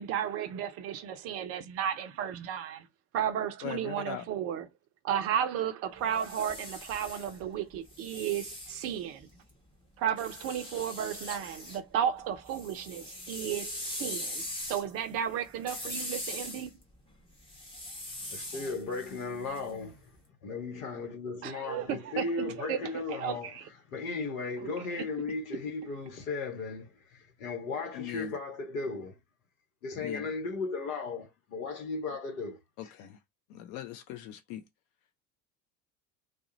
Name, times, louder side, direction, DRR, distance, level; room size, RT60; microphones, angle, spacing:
voice 1, 0.0-2.9 3.1-4.7 5.0-9.3 10.0-16.7 21.4-23.7 24.6-25.0, right 9 dB, 35° right, 0.5 m, -34 dB
voice 2, 3.6-4.2 27.9-28.3 30.0-30.3 32.8-33.2 33.5-34.6, left 12 dB, 35° left, 0.4 m, -40 dB
sound 1, 6.0-9.5 10.2-11.8 12.2-20.1, left 1 dB, 10° left, 0.9 m, -41 dB
voice 3, 18.3-20.0 20.4-23.5 23.9-26.9 27.4-29.1 29.8-32.9, left 4 dB, 65° left, 1.0 m, -36 dB
2.3 x 2.1 x 2.9 m
figure-of-eight pair, 70°, 45 cm